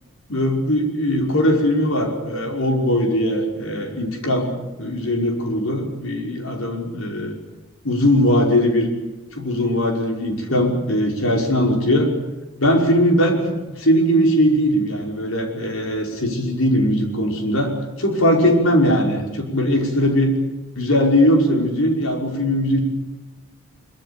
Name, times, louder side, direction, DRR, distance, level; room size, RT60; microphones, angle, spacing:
voice 1, 0.3-4.5 4.8-7.4 7.8-8.9 9.3-12.1 12.6-17.7 18.0-20.3 20.7-22.8, equal, 80° left, 2 dB, 5.7 m, -20 dB
24.0 x 23.5 x 7.1 m, 1.1 s
head